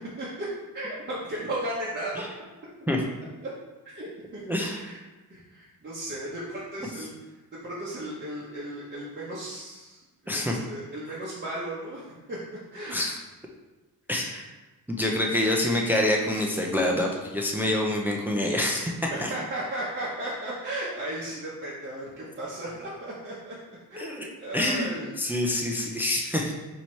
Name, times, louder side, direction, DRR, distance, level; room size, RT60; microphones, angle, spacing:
voice 1, 0.2-0.5 0.7-2.3 3.8-4.1 4.3-5.0 5.3-7.1 7.6-10.0 10.2-12.4 12.7-13.0 19.1-23.6 23.9-25.1, right 1 dB, 30° right, -8 dB, 0.7 m, -35 dB
voice 2, 4.5-4.8 10.3-10.6 12.9-13.2 14.1-14.4 14.9-18.9 19.2-19.3 24.0-24.3 24.5-26.5, left 1 dB, 5° right, 0 dB, 0.3 m, -26 dB
4.5 x 2.8 x 4.3 m, 1.1 s
wide cardioid pair, 165°, 36 cm